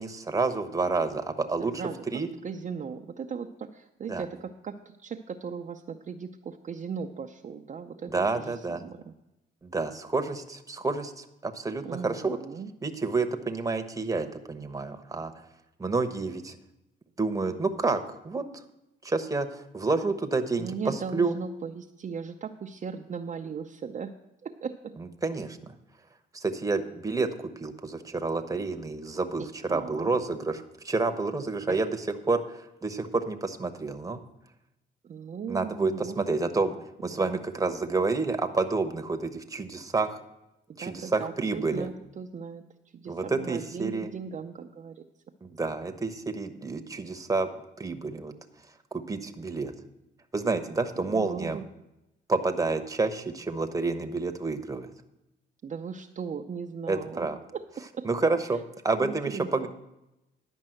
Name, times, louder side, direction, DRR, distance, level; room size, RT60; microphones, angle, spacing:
voice 1, 0.0-2.3 4.1-4.2 8.1-8.8 9.6-12.4 12.8-15.3 15.8-16.5 17.2-18.6 19.0-21.3 25.2-25.7 26.3-34.2 35.5-36.8 37.0-40.2 40.8-41.9 43.1-44.1 45.4-47.5 47.8-48.3 48.9-49.7 50.3-51.6 52.3-54.9 56.9-57.4 58.0-59.7, right 3 dB, 15° right, 7 dB, 1.0 m, -29 dB
voice 2, 1.6-2.0 2.4-9.1 11.8-12.7 20.6-24.1 24.4-25.0 29.4-30.1 31.7-31.8 35.0-36.5 37.1-37.4 40.7-42.6 42.9-45.0 51.0-51.6 55.6-58.1 59.0-59.7, right 6 dB, 40° right, 3 dB, 0.6 m, -38 dB
11.0 x 5.4 x 7.8 m, 0.90 s
cardioid pair, 90°, 20 cm